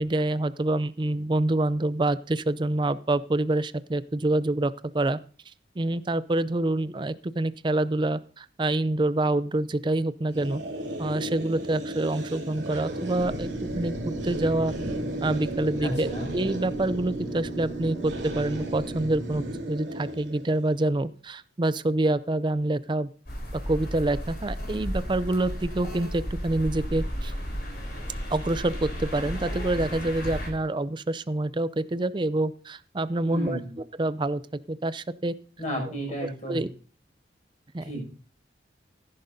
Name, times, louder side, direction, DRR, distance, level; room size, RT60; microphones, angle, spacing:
voice 1, 0.0-5.2 5.8-10.6 11.0-13.5 13.8-14.7 15.2-23.1 23.5-27.3 28.3-33.6 34.0-34.4 34.7-35.3 36.2-36.7 37.7-37.9, right 2 dB, 25° right, 15 dB, 0.5 m, -27 dB
sound 1, 10.3-20.8, right 1 dB, 80° right, 2.9 m, -35 dB
sound 2, 13.2-19.6, right 2 dB, 15° left, 2.5 m, -36 dB
voice 2, 15.8-16.3 33.2-33.7 35.6-36.6 37.8-38.1, equal, 40° left, 0 dB, 6.2 m, -32 dB
sound 3, 23.3-30.5, equal, 60° left, 3.8 m, -33 dB
15.5 x 10.5 x 2.7 m, 0.40 s
head